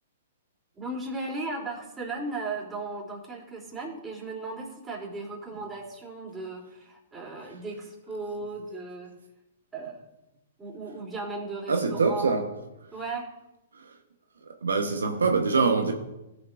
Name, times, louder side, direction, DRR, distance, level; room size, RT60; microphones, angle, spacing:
voice 1, 0.8-9.1 9.7-10.1 10.6-12.3 12.9-13.3, right 3 dB, 15° right, -3 dB, 3.1 m, -36 dB
voice 2, 11.7-12.5 13.7-14.0 14.6-15.9, right 4 dB, 80° right, 5 dB, 1.0 m, -24 dB
17.0 x 7.2 x 2.5 m, 0.96 s
hypercardioid pair, 120°, 0 cm